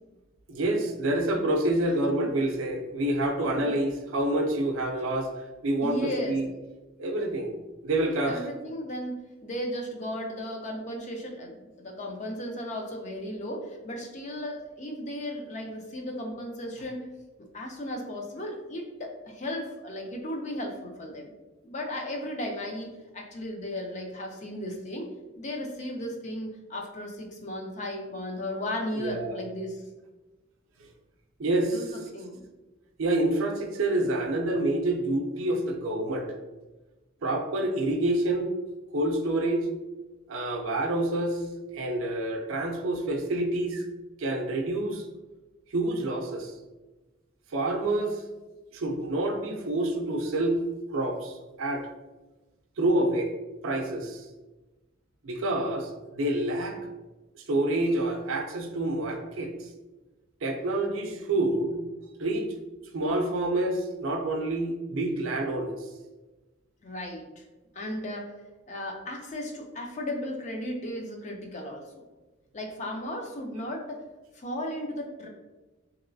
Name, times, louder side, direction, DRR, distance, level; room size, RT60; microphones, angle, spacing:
voice 1, 0.5-6.5 7.0-7.6 7.8-8.5 29.0-29.4 31.4-31.9 33.0-36.4 37.2-38.5 38.9-39.7 40.3-41.4 41.7-43.8 44.2-45.0 45.7-46.5 47.5-48.2 48.7-50.6 50.9-51.9 52.8-53.3 53.6-54.3 55.2-56.8 57.3-59.7 60.4-61.8 62.2-62.5 62.9-65.9, right 1 dB, 75° right, 4 dB, 0.5 m, -27 dB
voice 2, 5.8-6.4 8.3-17.1 17.5-21.3 21.6-22.9 23.1-25.1 25.4-29.8 31.7-32.5 66.8-67.4 67.7-68.3 68.7-71.9 72.5-74.0 74.3-75.3, left 1 dB, 35° left, 2 dB, 0.5 m, -35 dB
3.0 x 2.9 x 2.6 m, 1.1 s
head